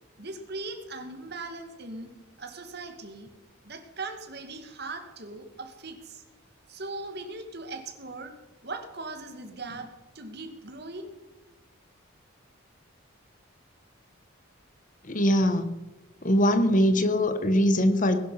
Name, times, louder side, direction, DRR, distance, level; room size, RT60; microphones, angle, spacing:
voice 1, 0.2-2.1 2.4-3.3 3.6-6.2 6.7-8.3 8.6-9.9 10.1-11.1, right 3 dB, 50° right, 6 dB, 2.2 m, -39 dB
voice 2, 15.0-15.7 16.2-18.2, equal, 40° left, 10 dB, 1.2 m, -22 dB
20.0 x 12.0 x 5.8 m, 1.1 s
head